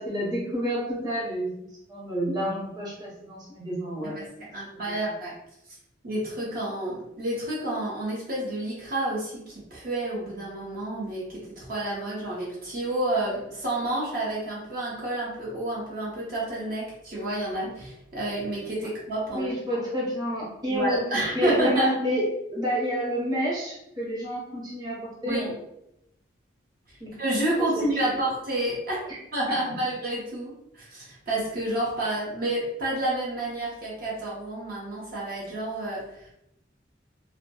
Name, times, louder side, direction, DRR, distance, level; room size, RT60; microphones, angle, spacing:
voice 1, 0.0-4.2 19.3-21.0 21.3-25.5 27.0-27.1 28.0-28.2 29.5-29.7, equal, 20° right, -6 dB, 0.7 m, -29 dB
voice 2, 4.5-5.3 6.0-19.5 20.7-21.9 25.3-25.5 27.2-36.3, right 1 dB, 50° right, -5 dB, 0.7 m, -29 dB
2.1 x 2.1 x 2.8 m, 0.82 s
head